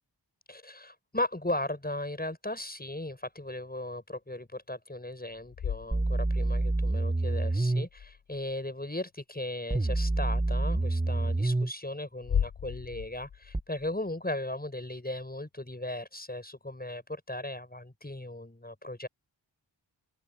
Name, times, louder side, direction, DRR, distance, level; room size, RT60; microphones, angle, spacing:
voice 1, 0.5-19.1, left 1 dB, 20° left, 6.5 m, -37 dB
sound 1, 5.3-6.7 7.8-8.5 10.7-10.9 12.1-14.1, left 8 dB, 55° left, 0.7 m, -36 dB
sound 2, 5.9-7.9 9.7-11.7 13.5-13.6, right 2 dB, 15° right, 1.0 m, -27 dB
open air
wide cardioid pair, 55°, 44 cm